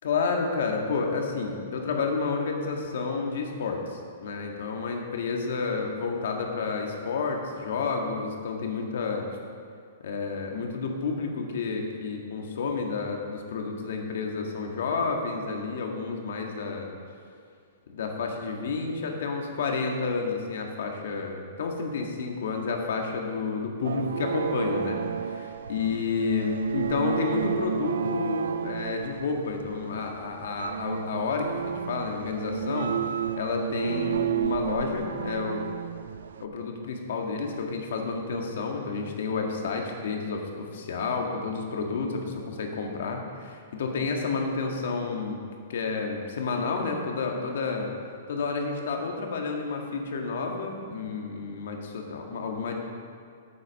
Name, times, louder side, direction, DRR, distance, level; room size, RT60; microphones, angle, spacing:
voice 1, 0.0-9.3 10.0-16.9 17.9-32.9 33.4-35.6 36.4-45.4 45.7-47.9 48.3-52.8, left 4 dB, 70° left, 2 dB, 1.7 m, -30 dB
sound 1, 23.8-36.4, right 8 dB, 85° right, 0.3 m, -32 dB
8.5 x 8.3 x 6.4 m, 2.2 s
hypercardioid pair, 150°, 0 cm